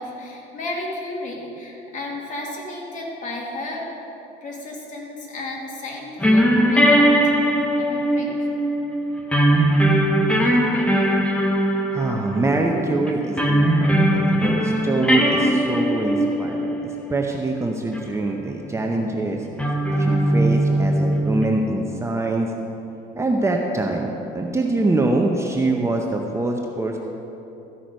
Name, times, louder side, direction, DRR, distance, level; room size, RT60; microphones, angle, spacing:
voice 1, 0.0-3.9 4.4-7.3 7.8-8.7, left 2 dB, 45° left, -2 dB, 2.4 m, -33 dB
sound 1, 6.2-17.4 17.8-18.0 19.6-21.4, right 1 dB, 5° left, 1.0 m, -20 dB
voice 2, 11.9-16.7 17.1-19.5 19.9-22.5 23.2-27.0, right 2 dB, 15° right, 1 dB, 0.7 m, -24 dB
14.0 x 5.9 x 5.2 m, 3.0 s
cardioid pair, 105°, 18 cm